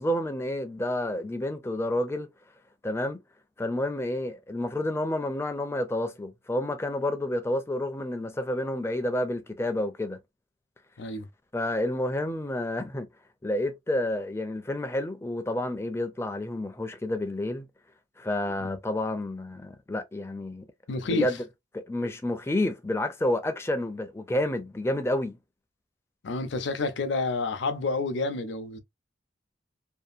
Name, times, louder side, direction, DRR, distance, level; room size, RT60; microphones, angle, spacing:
voice 1, 0.0-2.3 2.8-3.2 3.6-10.2 11.5-13.1 13.4-17.7 18.2-20.7 21.1-21.4 21.7-25.4, left 1 dB, 15° left, 0.4 m, -29 dB
voice 2, 20.9-21.4 26.2-28.8, left 3 dB, 70° left, 0.5 m, -29 dB
2.8 x 2.4 x 2.4 m
head